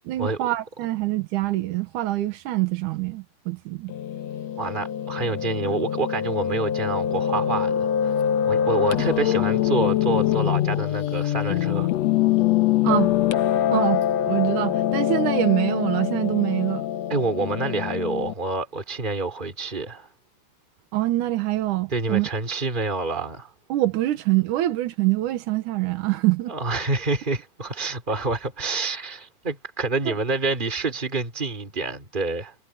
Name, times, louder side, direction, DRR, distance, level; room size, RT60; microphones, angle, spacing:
voice 1, 0.1-3.9 12.8-13.1 13.7-16.9 20.9-22.3 23.7-26.5 30.1-30.2, right 16 dB, 90° right, 2.6 m, -24 dB
Piano, 3.9-18.3, left 11 dB, 65° left, 2.0 m, -24 dB
voice 2, 4.6-8.1 8.4-11.9 17.1-20.1 21.9-23.5 26.5-32.5, right 3 dB, 15° right, 3.7 m, -27 dB
omnidirectional pair, 3.5 m